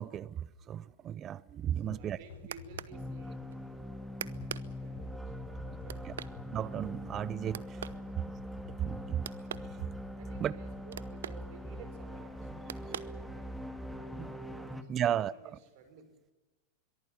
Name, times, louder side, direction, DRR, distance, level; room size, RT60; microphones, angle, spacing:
voice 1, 0.0-2.2 6.5-7.8 8.9-9.2 10.4-10.5 14.2-14.3 14.9-15.3, right 10 dB, 30° right, 0.6 m, -34 dB
voice 2, 1.7-3.7 4.5-6.3 7.5-7.9 8.9-9.4 10.2-13.8 14.5-16.1, right 5 dB, 55° right, 5.5 m, -56 dB
sound 1, 1.8-12.0, left 7 dB, 70° left, 5.3 m, -55 dB
sound 2, 1.8-13.7, right 10 dB, 85° right, 0.9 m, -48 dB
sound 3, 2.9-14.8, equal, ahead, 1.9 m, -42 dB
23.0 x 14.0 x 9.9 m
hypercardioid pair, 120°, 0 cm